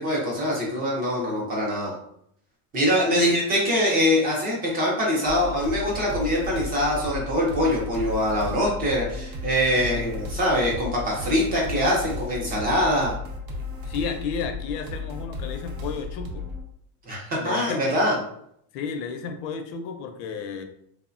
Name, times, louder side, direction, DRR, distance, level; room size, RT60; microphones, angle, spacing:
voice 1, 0.0-1.9 2.7-13.1 17.1-18.2, equal, 25° right, -2 dB, 0.4 m, -23 dB
sound 1, 5.3-16.6, left 3 dB, 65° right, 0.6 m, -34 dB
voice 2, 13.8-16.5 17.3-18.1 18.7-20.6, left 6 dB, 75° left, 6 dB, 0.5 m, -33 dB
3.1 x 2.1 x 2.4 m, 0.71 s
cardioid pair, 175°, 40 cm